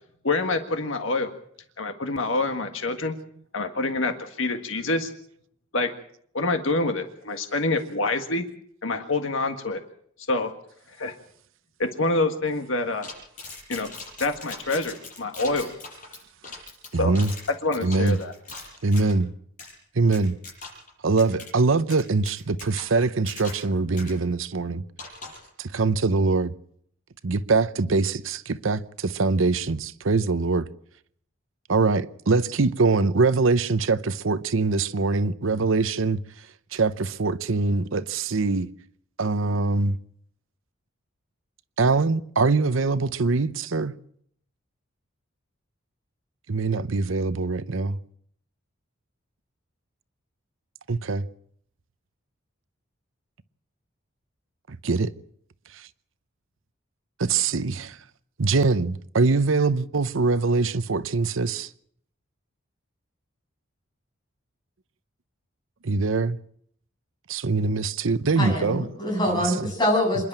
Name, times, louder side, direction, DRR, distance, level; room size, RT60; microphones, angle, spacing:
voice 1, 0.2-1.3 1.8-3.2 3.5-5.1 5.7-5.9 6.3-8.4 8.8-9.8 10.3-10.5 11.0-11.1 11.8-13.1 13.7-13.9 14.2-15.7 17.0-17.1 17.5-18.3, left 2 dB, 70° left, 1.7 m, -26 dB
sound 1, 13.0-19.2 19.6-19.7 20.1-20.9 21.2-21.5 21.9-23.7 24.0-24.1 25.0-25.5, left 3 dB, 40° left, 7.3 m, -41 dB
voice 2, 16.9-17.3 17.8-18.2 18.8-19.3 19.9-20.4 21.0-24.8 25.6-26.5 27.2-30.7 31.7-36.5 36.7-38.7 39.2-40.0 41.8-43.9 46.5-48.0 50.9-51.3 54.7-55.1 55.7-55.9 57.2-58.0 58.4-61.7 65.8-66.4 67.3-68.8 69.2-69.5, right 3 dB, 75° right, 0.8 m, -23 dB
voice 3, 68.4-70.3, left 1 dB, 20° left, 7.7 m, -24 dB
27.0 x 11.0 x 8.8 m
head